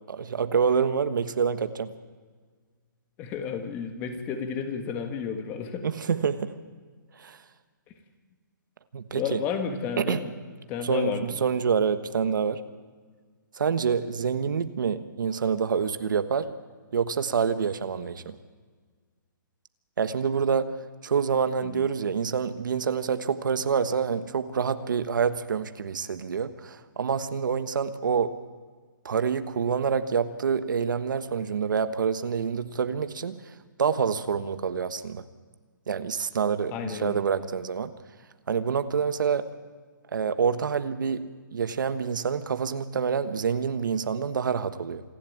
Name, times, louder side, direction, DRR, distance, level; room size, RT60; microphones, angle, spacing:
voice 1, 0.1-1.9 5.8-6.5 7.2-7.4 8.9-9.4 10.0-10.2 10.8-12.6 13.6-16.5 16.9-18.4 20.0-20.8 21.0-28.4 29.0-33.4 33.8-35.2 35.9-37.9 38.5-39.5 40.1-45.0, right 6 dB, 70° right, 11 dB, 1.3 m, -27 dB
voice 2, 3.2-5.9 9.1-10.3 10.7-11.4 21.6-21.9 36.7-37.2, left 7 dB, 20° left, 7 dB, 1.6 m, -32 dB
27.0 x 11.5 x 8.6 m, 1.5 s
hypercardioid pair, 165°, 11 cm